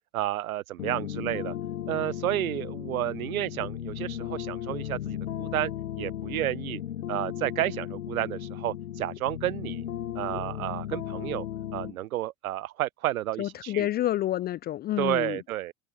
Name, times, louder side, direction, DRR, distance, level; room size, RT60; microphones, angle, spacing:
voice 1, 0.1-1.5 1.9-5.7 6.0-6.8 7.1-9.9 10.1-11.5 11.7-13.9 15.0-15.7, right 14 dB, 75° right, 0.8 m, -31 dB
sound 1, 0.8-11.9, left 11 dB, 75° left, 1.4 m, -35 dB
voice 2, 13.4-15.4, left 13 dB, 25° left, 0.3 m, -28 dB
figure-of-eight pair, 60°, 43 cm